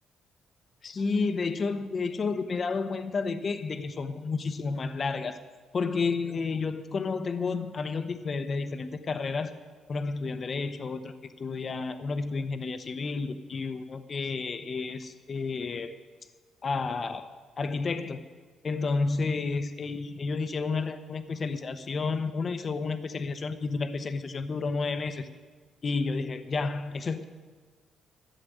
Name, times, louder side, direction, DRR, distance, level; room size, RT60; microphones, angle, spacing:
voice 1, 0.8-5.4 5.7-9.5 9.9-15.9 16.6-18.2 18.6-25.3 25.8-27.2, left 4 dB, 40° left, 10 dB, 0.9 m, -31 dB
13.0 x 7.7 x 7.9 m, 1.5 s
cardioid pair, 90°, 0 cm